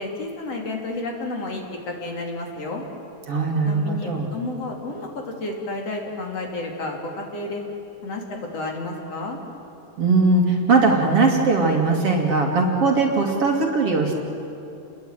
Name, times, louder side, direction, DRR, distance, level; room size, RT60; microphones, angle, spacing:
voice 1, 0.0-2.8 3.6-7.6 8.0-9.4, left 2 dB, 55° left, 1 dB, 3.8 m, -31 dB
voice 2, 3.3-4.3 10.0-14.1, right 3 dB, 50° right, 1 dB, 3.3 m, -20 dB
29.5 x 21.5 x 9.1 m, 2.8 s
omnidirectional pair, 3.6 m